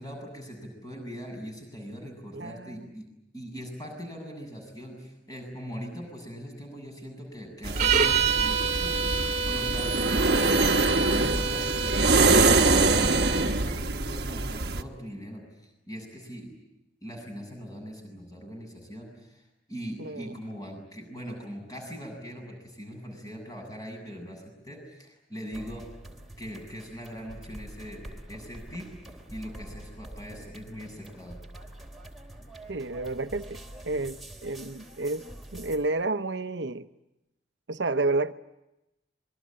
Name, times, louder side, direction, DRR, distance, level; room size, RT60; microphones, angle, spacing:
voice 1, 0.0-3.1 3.3-9.2 9.4-16.6 17.0-25.8 26.4-28.9 29.3-31.4, equal, 20° left, 7.6 m, -41 dB
voice 2, 2.3-2.8 20.0-20.3 32.7-36.9 37.7-38.3, right 2 dB, 85° right, 0.9 m, -30 dB
sound 1, 7.6-14.8, right 3 dB, 60° right, 1.2 m, -24 dB
sound 2, 7.8-13.5, right 5 dB, 40° right, 1.8 m, -28 dB
sound 3, 25.5-35.8, right 1 dB, ahead, 3.5 m, -46 dB
27.0 x 22.5 x 8.9 m
head